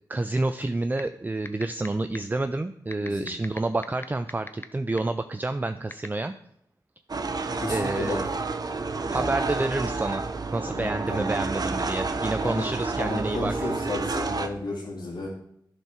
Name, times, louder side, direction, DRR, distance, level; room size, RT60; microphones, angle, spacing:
voice 1, 0.1-6.3 7.7-8.3 9.1-10.2 10.5-13.7, right 2 dB, 20° right, 9 dB, 0.5 m, -29 dB
sound 1, 1.0-1.1 1.5-1.9 2.1-2.2 2.9-4.6 5.0-5.1 5.9-6.1, left 3 dB, 30° left, 0.7 m, -35 dB
voice 2, 3.0-3.3 7.3-8.2 9.1-9.4 10.7-11.3 12.4-12.7 13.0-15.3, left 2 dB, 75° left, -7 dB, 2.5 m, -33 dB
sound 2, 7.1-14.5, right 3 dB, 55° right, 0.8 m, -30 dB
11.5 x 4.6 x 5.9 m, 0.73 s
cardioid pair, 65°, 8 cm